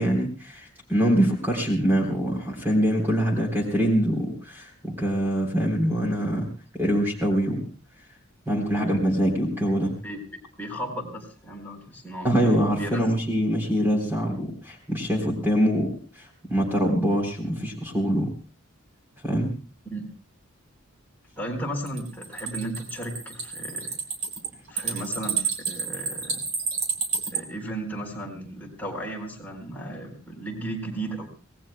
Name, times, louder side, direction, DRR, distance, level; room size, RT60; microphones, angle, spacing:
voice 1, 0.0-6.5 6.7-7.7 8.4-9.9 12.2-18.3 19.2-19.5, equal, 10° right, 0 dB, 3.6 m, -24 dB
voice 2, 8.5-8.9 10.0-10.2 10.6-13.0 19.9-20.0 21.4-23.9 24.7-26.4 27.3-31.3, right 1 dB, 10° left, -1 dB, 4.0 m, -35 dB
sound 1, 21.9-27.4, right 5 dB, 75° right, 3.2 m, -30 dB
26.0 x 19.0 x 2.2 m, 0.36 s
head